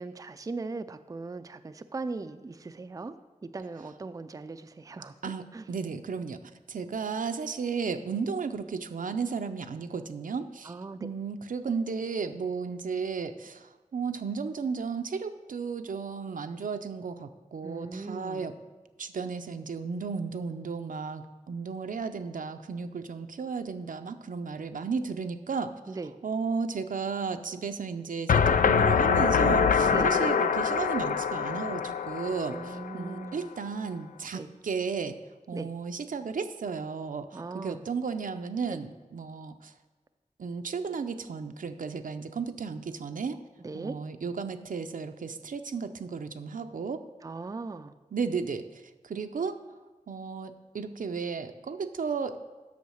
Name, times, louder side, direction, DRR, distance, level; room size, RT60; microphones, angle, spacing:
voice 1, 0.0-3.1 3.4-5.7 10.6-11.0 17.6-18.5 25.9-26.1 29.9-30.1 32.5-33.5 34.3-34.5 35.5-35.7 37.3-37.8 43.6-44.0 47.2-47.9, right 3 dB, 25° right, 10 dB, 0.4 m, -39 dB
voice 2, 5.2-6.4 6.7-10.7 11.0-18.5 19.0-25.7 26.2-35.2 35.5-39.7 40.4-43.4 43.7-47.0 48.1-49.6 50.1-52.4, right 5 dB, 80° right, 8 dB, 0.6 m, -34 dB
sound 1, 28.3-33.2, left 6 dB, 85° left, 0.4 m, -24 dB
8.4 x 6.4 x 6.4 m, 1.3 s
wide cardioid pair, 95°, 14 cm